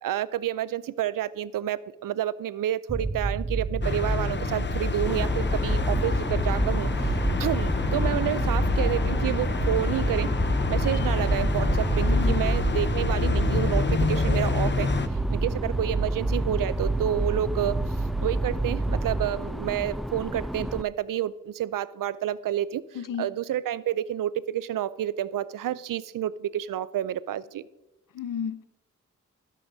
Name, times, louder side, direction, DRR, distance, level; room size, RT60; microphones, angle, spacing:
voice 1, 0.0-10.3 10.7-17.8 18.2-22.8 23.2-27.7, right 11 dB, 80° right, 0.5 m, -29 dB
sound 1, 2.9-19.3, right 3 dB, 20° right, 0.8 m, -29 dB
sound 2, 3.8-15.1, left 4 dB, 35° left, 0.8 m, -28 dB
sound 3, 5.1-20.8, equal, ahead, 0.4 m, -33 dB
voice 2, 12.1-12.4 22.9-23.3 28.1-28.6, left 8 dB, 75° left, 0.7 m, -32 dB
13.0 x 12.0 x 2.7 m
cardioid pair, 45°, 32 cm